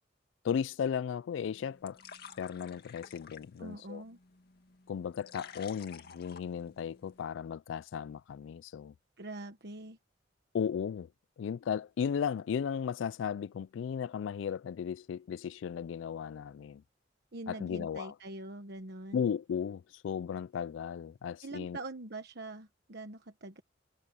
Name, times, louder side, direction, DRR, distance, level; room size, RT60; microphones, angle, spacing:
voice 1, 0.4-2.0 2.4-4.0 4.9-8.9 10.5-11.1 11.4-16.8 17.5-18.1 19.1-21.8, left 7 dB, 75° left, 0.3 m, -35 dB
sound 1, 1.3-7.3, left 6 dB, 55° left, 2.1 m, -53 dB
voice 2, 3.6-4.2 9.2-10.0 17.3-19.3 21.4-23.6, right 2 dB, 60° right, 1.3 m, -44 dB
head